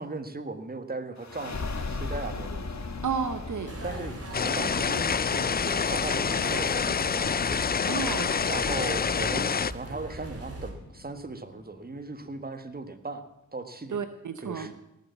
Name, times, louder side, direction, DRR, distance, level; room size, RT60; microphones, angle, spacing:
voice 1, 0.0-2.8 3.8-7.6 8.4-13.3 13.5-14.0 14.4-14.8, right 3 dB, 30° right, 9 dB, 1.6 m, -38 dB
sound 1, 1.2-12.4, left 3 dB, 60° left, 1.7 m, -40 dB
voice 2, 3.0-3.8 7.9-8.3 13.9-14.8, right 6 dB, 65° right, 10 dB, 1.0 m, -32 dB
sound 2, 3.7-10.7, right 1 dB, 50° right, 3.3 m, -40 dB
sound 3, 4.3-9.7, left 6 dB, 30° left, 0.4 m, -27 dB
18.0 x 8.3 x 7.1 m, 0.84 s
cardioid pair, 55°, 32 cm